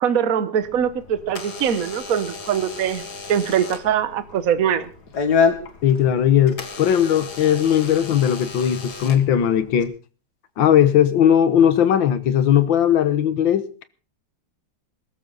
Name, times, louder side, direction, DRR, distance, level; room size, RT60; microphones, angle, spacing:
voice 1, 0.0-3.0 3.3-4.9, right 8 dB, 55° right, 1.4 m, -22 dB
Door / Alarm, 0.6-9.8, left 5 dB, 60° left, 2.4 m, -29 dB
voice 2, 5.8-9.9 10.6-13.9, left 9 dB, 85° left, 1.9 m, -18 dB
22.0 x 13.5 x 3.9 m
omnidirectional pair, 2.0 m